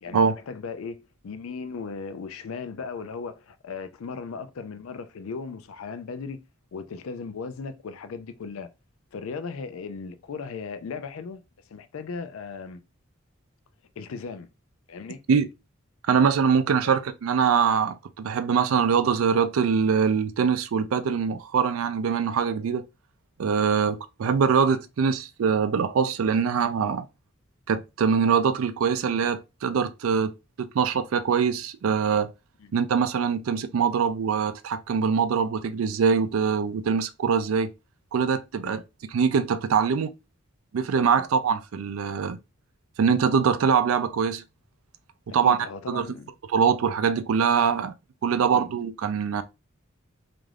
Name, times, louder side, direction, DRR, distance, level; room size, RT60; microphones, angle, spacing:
voice 1, 0.0-6.4 6.7-8.7 9.1-11.4 11.7-12.8 14.0-14.5 14.9-15.2 16.8-16.9 32.6-32.7 36.7-36.8 38.6-38.8 41.1-41.2 45.4-46.3 48.5-48.7, left 5 dB, 85° left, 0.4 m, -37 dB
voice 2, 16.1-22.8 23.4-27.1 27.7-30.3 30.6-32.3 32.7-37.7 38.1-38.8 39.1-40.1 40.7-42.4 43.0-44.4 45.3-45.6 45.9-46.0 46.5-47.9 48.2-49.4, right 6 dB, 85° right, 0.4 m, -23 dB
3.3 x 2.5 x 2.3 m
head